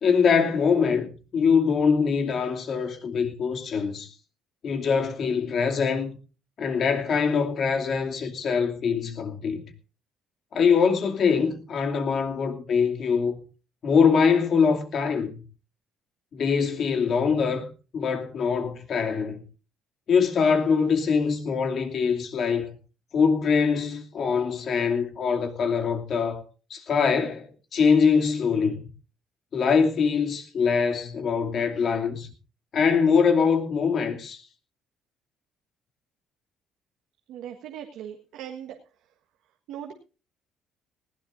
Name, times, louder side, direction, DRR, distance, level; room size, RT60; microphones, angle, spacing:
voice 1, 0.0-4.1 4.6-6.2 6.6-9.6 10.5-13.4 13.8-15.4 16.3-17.7 17.9-19.4 20.1-22.8 23.1-26.4 26.7-28.8 29.5-32.3 32.7-34.4, left 6 dB, 50° left, 2.7 m, -23 dB
voice 2, 37.3-38.8 39.7-39.9, right 10 dB, 85° right, 1.6 m, -39 dB
19.5 x 16.0 x 2.6 m
cardioid pair, 120°, 0 cm